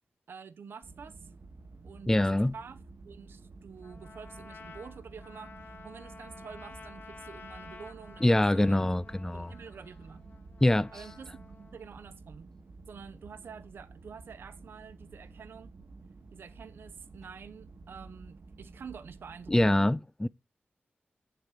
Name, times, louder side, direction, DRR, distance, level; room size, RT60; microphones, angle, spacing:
voice 1, 0.3-1.3 1.8-8.9 9.3-10.2 10.9-11.4 11.7-12.5 12.9-15.7 16.3-19.9, right 6 dB, 85° right, 0.8 m, -48 dB
sound 1, 0.8-19.7, right 3 dB, 55° right, 1.1 m, -51 dB
voice 2, 2.1-2.5 8.2-9.5 10.6-10.9 19.5-20.3, left 1 dB, 15° left, 0.4 m, -24 dB
Trumpet, 3.8-11.9, left 4 dB, 65° left, 1.3 m, -51 dB
8.3 x 7.6 x 6.2 m
cardioid pair, 60°, 4 cm